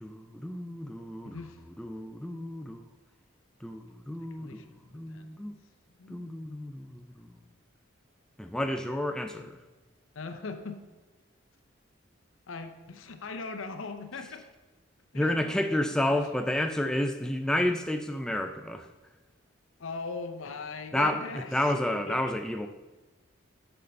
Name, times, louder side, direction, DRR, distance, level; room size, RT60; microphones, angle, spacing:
voice 1, 0.0-1.4 1.8-2.9 3.6-4.6 4.9-5.5 6.1-7.3 8.4-9.6 15.1-18.9 20.9-21.2 21.5-22.7, left 1 dB, 5° left, 6 dB, 0.3 m, -30 dB
voice 2, 1.2-1.6 4.2-5.3 6.0-6.3 9.3-9.5 10.1-10.8 12.5-14.4 15.1-16.0 19.8-22.2, left 4 dB, 80° left, 8 dB, 0.6 m, -40 dB
6.7 x 5.5 x 5.2 m, 1.2 s
head